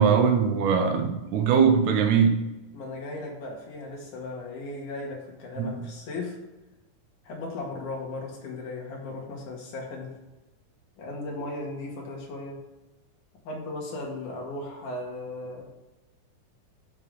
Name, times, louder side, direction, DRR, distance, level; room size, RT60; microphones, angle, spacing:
voice 1, 0.0-2.4 5.6-5.8, right 6 dB, 75° right, 2.3 m, -21 dB
voice 2, 2.7-6.4 7.2-10.1 11.0-12.6 13.4-15.7, left 2 dB, 75° left, 3.4 m, -36 dB
7.2 x 5.3 x 6.3 m
omnidirectional pair, 3.5 m